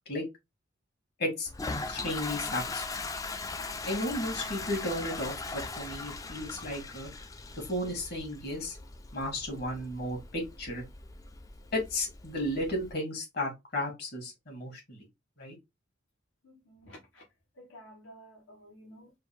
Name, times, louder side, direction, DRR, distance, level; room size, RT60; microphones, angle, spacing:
Toilet flush, 1.5-12.9, left 3 dB, 15° left, 0.4 m, -40 dB
voice 1, 1.9-2.8 3.8-7.1 7.7-8.8 9.1-10.8 11.7-15.0 15.4-15.5, left 1 dB, 55° left, 2.1 m, -34 dB
voice 2, 16.4-17.2 17.5-19.1, equal, 75° left, 1.2 m, -52 dB
4.3 x 2.5 x 3.6 m
head